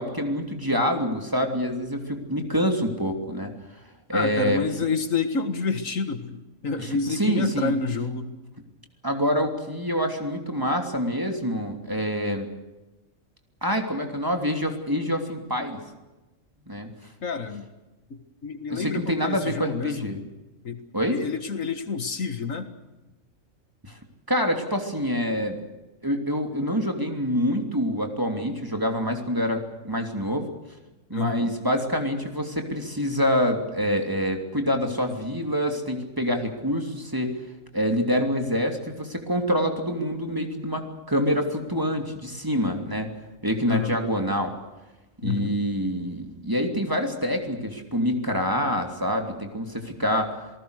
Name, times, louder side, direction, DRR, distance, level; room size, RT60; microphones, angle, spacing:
voice 1, 0.0-3.5 4.1-4.6 6.8-7.8 9.0-12.5 13.6-15.8 16.7-16.9 18.7-20.2 20.9-21.2 23.8-24.0 24.3-25.6 26.0-30.5 31.1-37.3 37.7-43.1 43.4-44.5 45.2-50.3, equal, 15° right, 4 dB, 3.0 m, -26 dB
voice 2, 4.1-8.3 17.2-17.7 18.1-20.2 20.6-20.8 21.1-22.7 31.1-31.5 43.7-44.0 45.2-45.6, left 4 dB, 75° left, 8 dB, 2.1 m, -29 dB
28.0 x 19.0 x 6.6 m, 1.1 s
omnidirectional pair, 1.4 m